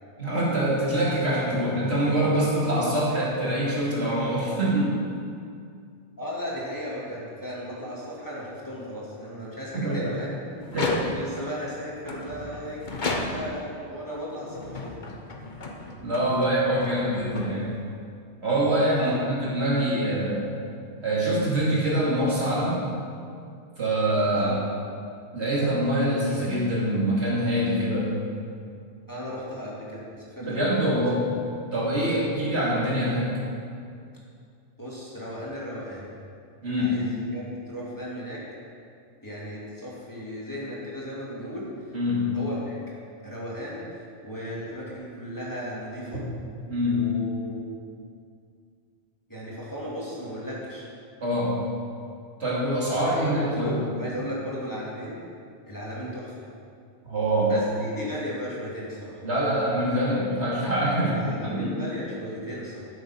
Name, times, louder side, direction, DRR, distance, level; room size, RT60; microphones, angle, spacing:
voice 1, 0.2-4.9 9.7-10.1 10.7-11.0 16.0-17.7 18.4-20.5 21.0-22.8 23.8-24.6 25.3-28.1 30.4-31.2 31.7-33.3 36.6-37.0 41.9-42.3 46.7-47.0 51.2-51.6 52.4-53.7 57.1-57.5 59.2-61.2 61.4-61.8, right 1 dB, 65° right, -6 dB, 3.0 m, -24 dB
voice 2, 6.2-10.3 10.8-14.9 19.0-19.3 24.3-24.6 29.1-31.0 31.9-32.2 34.8-36.1 36.8-38.4 39.2-41.9 42.3-42.8 43.2-46.2 46.9-47.7 49.3-50.9 52.9-55.2 55.7-56.3 57.4-59.2 61.0-62.9, equal, 15° left, -7 dB, 2.7 m, -36 dB
sound 1, 10.6-11.5 12.0-13.7 14.4-18.0, left 2 dB, 45° left, 1.2 m, -34 dB
13.5 x 7.5 x 6.0 m, 2.3 s
omnidirectional pair, 1.2 m